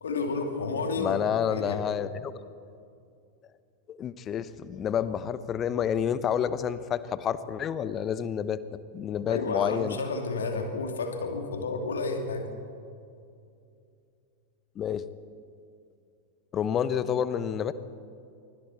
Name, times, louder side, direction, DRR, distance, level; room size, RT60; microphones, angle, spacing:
voice 1, 0.0-1.8 9.3-12.5, left 3 dB, 65° left, 5 dB, 2.5 m, -31 dB
voice 2, 0.9-2.3 3.9-8.6 8.9-10.0 14.8-15.0 16.5-17.7, left 8 dB, 30° left, 15 dB, 1.0 m, -29 dB
25.0 x 24.0 x 4.4 m, 2.5 s
figure-of-eight pair, 90°, 0 cm